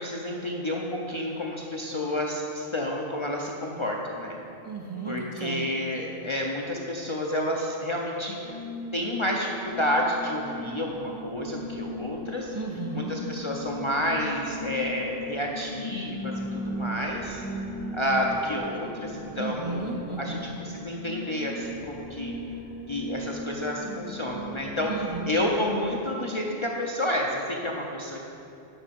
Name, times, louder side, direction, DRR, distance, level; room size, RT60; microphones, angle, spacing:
voice 1, 0.0-4.4 5.1-8.6 8.9-12.5 12.9-17.4 17.9-22.3 22.9-24.9 25.2-28.2, left 1 dB, 40° left, -1 dB, 0.4 m, -30 dB
voice 2, 4.6-5.7 12.5-13.1 19.4-20.4 24.8-25.3, right 3 dB, 50° right, -1 dB, 0.4 m, -34 dB
sound 1, 8.4-26.0, equal, 90° right, 1.5 m, -37 dB
7.1 x 5.0 x 5.2 m, 2.7 s
omnidirectional pair, 1.1 m